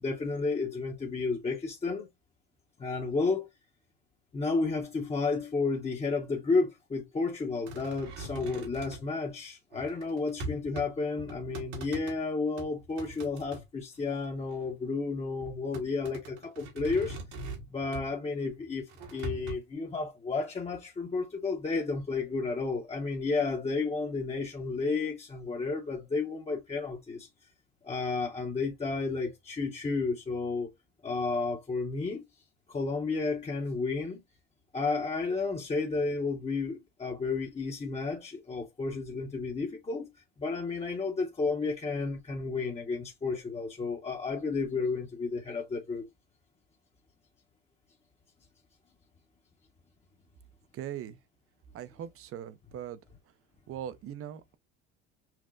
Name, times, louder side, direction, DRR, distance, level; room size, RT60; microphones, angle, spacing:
voice 1, 0.0-2.1 2.8-3.5 4.3-17.2 17.7-27.3 27.8-30.7 31.0-32.2 32.7-34.2 34.7-40.1 40.4-46.0, left 4 dB, 20° left, 0.8 m, -32 dB
sound 1, 7.7-9.1 9.7-10.9 11.2-12.2 12.6-13.6 14.1-14.7 15.4-18.2 18.9-19.5, right 1 dB, 65° right, 1.4 m, -41 dB
voice 2, 50.7-51.2 51.7-53.0 53.7-54.6, right 10 dB, 50° right, 0.6 m, -40 dB
5.8 x 2.1 x 2.5 m
supercardioid pair, 85°, 30 cm